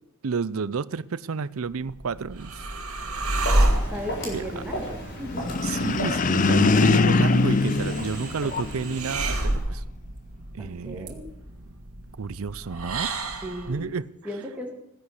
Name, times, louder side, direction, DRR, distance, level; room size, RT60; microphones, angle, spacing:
voice 1, 0.2-2.7 4.3-4.4 5.6-9.8 10.5-11.2 12.2-13.1 13.7-14.1, right 5 dB, 70° right, 0.5 m, -30 dB
sound 1, 1.7-13.8, right 1 dB, 85° right, 2.3 m, -30 dB
Walk footsteps, 3.0-9.6, equal, 50° left, 6.8 m, -36 dB
voice 2, 3.9-5.6 10.6-11.3 13.4-13.9 14.2-14.7, equal, 5° right, 2.1 m, -36 dB
sound 2, 5.3-8.9, left 3 dB, 35° left, 0.5 m, -22 dB
16.0 x 10.5 x 8.2 m
head